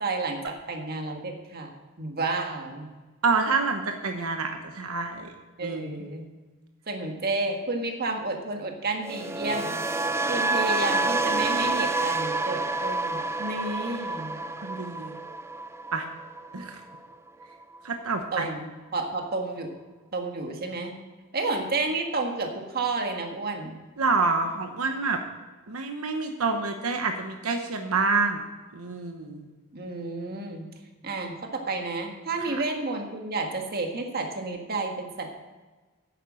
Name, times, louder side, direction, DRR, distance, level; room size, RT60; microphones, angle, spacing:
voice 1, 0.0-1.7 2.0-2.9 5.6-6.3 6.9-9.8 10.3-14.4 18.3-19.7 20.1-20.9 21.3-23.8 29.7-30.7 31.0-35.3, right 3 dB, 45° right, 3 dB, 1.7 m, -31 dB
voice 2, 3.2-5.3 5.6-6.0 14.6-15.2 15.9-16.1 16.5-16.8 17.8-18.5 24.0-25.2 25.7-28.4 28.7-29.5 32.4-32.6, right 4 dB, 85° right, 5 dB, 1.0 m, -27 dB
sound 1, 9.0-17.1 17.4-17.8, right 3 dB, 10° right, 0.5 m, -28 dB
10.5 x 9.1 x 6.3 m, 1.3 s
head